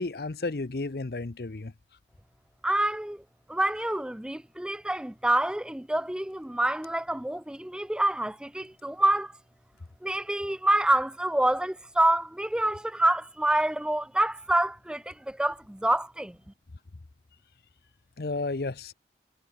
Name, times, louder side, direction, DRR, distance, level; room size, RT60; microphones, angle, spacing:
voice 1, 0.0-1.7 18.2-18.9, left 3 dB, 60° left, 0.7 m, -32 dB
voice 2, 2.6-3.2 3.5-9.3 10.0-16.4, right 1 dB, 5° right, 0.4 m, -27 dB
head